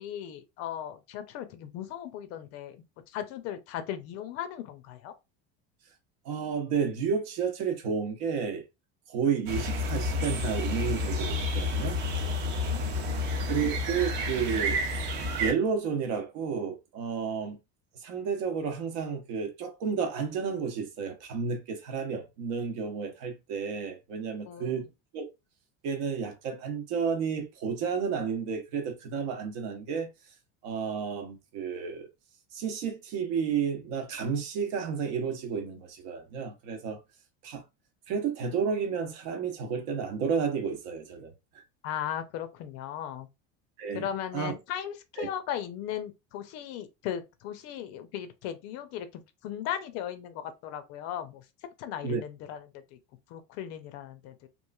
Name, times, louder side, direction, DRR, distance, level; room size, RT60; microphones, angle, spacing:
voice 1, 0.0-5.1 12.4-13.5 24.5-24.7 41.8-43.3 43.9-51.4 51.8-53.0 53.3-54.5, left 10 dB, 50° left, 0.5 m, -37 dB
voice 2, 6.2-8.6 9.1-12.0 13.5-14.8 15.3-17.6 18.0-24.9 25.1-25.2 25.8-30.1 30.6-32.1 32.5-37.0 37.4-37.6 38.1-41.3 43.8-44.1 44.3-44.5 45.2-45.3 52.0-52.2, right 6 dB, 70° right, 0.8 m, -31 dB
sound 1, 9.5-15.5, left 2 dB, 35° right, 0.5 m, -30 dB
3.0 x 2.5 x 2.3 m
cardioid pair, 165°, 31 cm